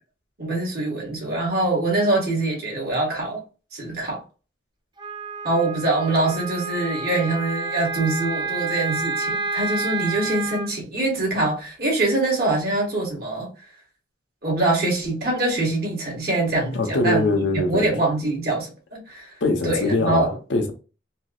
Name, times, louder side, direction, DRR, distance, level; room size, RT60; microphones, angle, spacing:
voice 1, 0.4-3.4 3.7-4.2 5.4-13.5 14.4-17.2 17.7-19.3 19.6-20.3, right 2 dB, 55° right, 1.6 m, -24 dB
Wind instrument woodwind instrument, 5.0-10.7, right 4 dB, 25° right, 0.5 m, -29 dB
voice 2, 16.7-17.9 19.4-20.7, left 2 dB, 80° left, 0.8 m, -22 dB
4.4 x 2.0 x 2.4 m
head